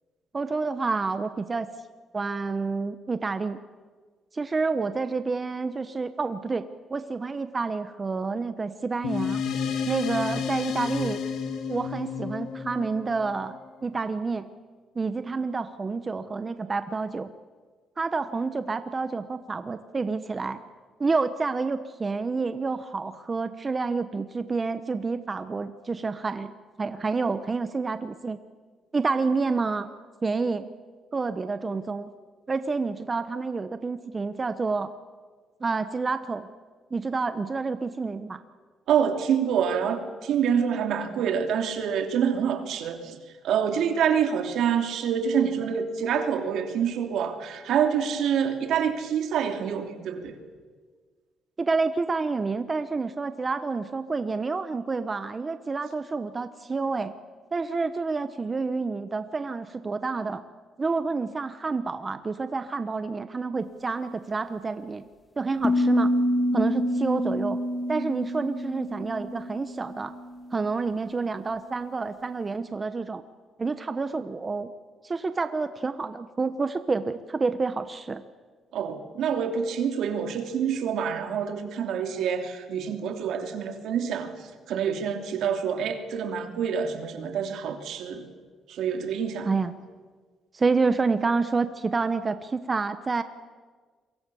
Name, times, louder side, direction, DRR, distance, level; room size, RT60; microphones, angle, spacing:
voice 1, 0.3-1.7 2.1-3.6 4.3-9.4 9.9-11.2 11.7-14.5 14.9-17.3 18.0-20.6 21.0-26.5 26.8-28.4 28.9-29.9 30.2-30.7 31.1-32.1 32.5-34.9 35.6-36.5 36.9-38.4 51.6-57.1 57.5-60.4 60.8-65.0 65.4-66.1 66.5-67.6 67.9-70.1 70.5-73.2 73.6-74.7 75.0-78.2 89.4-89.7 90.5-93.2, right 4 dB, 30° right, 11 dB, 1.1 m, -28 dB
sound 1, 9.0-13.8, left 6 dB, 80° left, 2.6 m, -31 dB
voice 2, 38.9-43.2 43.4-50.4 78.7-84.3 84.7-88.2 88.7-89.5, right 7 dB, 80° right, 5 dB, 2.9 m, -26 dB
sound 2, 65.6-70.5, equal, 15° left, 2.0 m, -27 dB
27.5 x 23.5 x 7.1 m, 1.5 s
cardioid pair, 90°, 0 cm